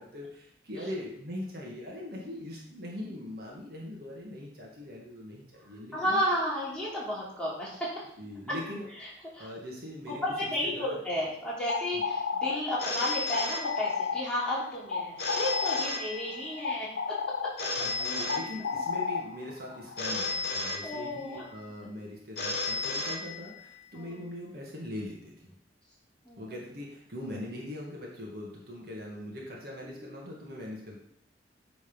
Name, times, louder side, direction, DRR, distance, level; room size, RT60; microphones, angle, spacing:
voice 1, 0.0-6.2 8.2-8.9 9.4-11.0 11.9-12.0 17.8-25.6 26.4-30.9, left 1 dB, 55° right, -2 dB, 1.8 m, -41 dB
voice 2, 5.9-8.0 9.3-9.5 10.1-17.2 17.4-17.5 20.8-21.4 23.9-24.2 26.2-26.4 29.8-30.4, equal, 5° left, -8 dB, 2.9 m, -33 dB
sound 1, 11.5-20.3, left 5 dB, 80° left, 0.7 m, -34 dB
Telephone, 12.8-14.3 15.2-16.7 17.6-19.1 20.0-21.5 22.4-23.9, left 3 dB, 55° left, 1.0 m, -34 dB
8.7 x 4.1 x 5.4 m, 0.69 s
head